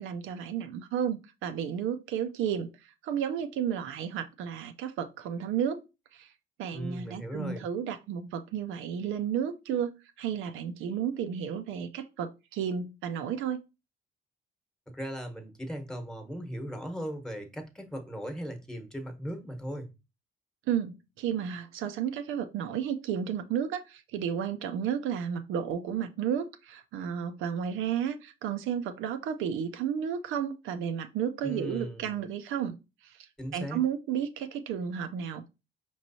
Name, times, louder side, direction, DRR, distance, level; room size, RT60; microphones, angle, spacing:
voice 1, 0.0-2.7 3.0-5.8 6.1-6.3 6.6-13.6 20.7-32.8 33.0-33.3 33.5-35.5, right 8 dB, 90° right, 0.5 m, -32 dB
voice 2, 6.7-7.7 14.9-19.9 31.4-32.2 33.4-33.8, equal, 5° left, 1.0 m, -38 dB
5.1 x 3.1 x 2.7 m
cardioid pair, 90°, 20 cm